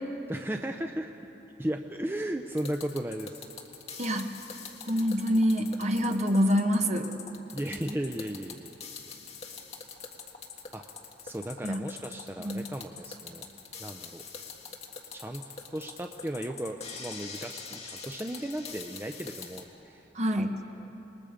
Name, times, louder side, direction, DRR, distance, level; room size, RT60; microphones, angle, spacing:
voice 1, 0.3-1.1 1.6-3.4 7.5-8.7 10.7-10.8 11.2-13.5 13.8-14.2 15.1-15.4 15.7-20.1 20.4-20.5 20.8-20.9, right 1 dB, 15° right, 4 dB, 0.6 m, -35 dB
sound 1, 2.6-19.7, left 5 dB, 35° left, 1.7 m, -44 dB
voice 2, 4.0-4.3 4.9-7.1 11.6-11.8 12.4-12.6 20.1-20.5, equal, 40° right, 5 dB, 1.2 m, -26 dB
27.0 x 21.0 x 5.1 m, 3.0 s
head